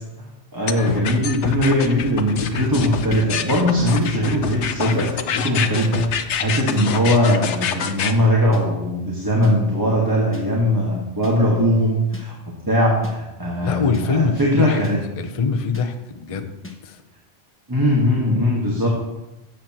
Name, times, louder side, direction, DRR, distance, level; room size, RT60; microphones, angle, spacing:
voice 1, 0.5-15.0 16.3-16.4 17.7-18.9, equal, 20° right, -4 dB, 1.5 m, -20 dB
sound 1, 0.7-8.1, left 8 dB, 75° left, 1.0 m, -26 dB
sound 2, 3.1-3.2 4.0-4.1 4.9-5.0 5.8-5.9 6.7-6.8 7.6-7.7 8.5-8.6 9.4-9.5 10.3-10.5 11.2-11.4 12.1-12.3 13.0-13.2 13.9-14.1 14.8-15.0 15.7-15.9 16.6-16.8, left 4 dB, 10° left, 1.1 m, -36 dB
voice 2, 13.6-14.8 15.2-16.5 16.8-17.0, left 4 dB, 35° left, 7 dB, 0.6 m, -23 dB
13.5 x 8.0 x 3.0 m, 0.98 s
omnidirectional pair, 1.2 m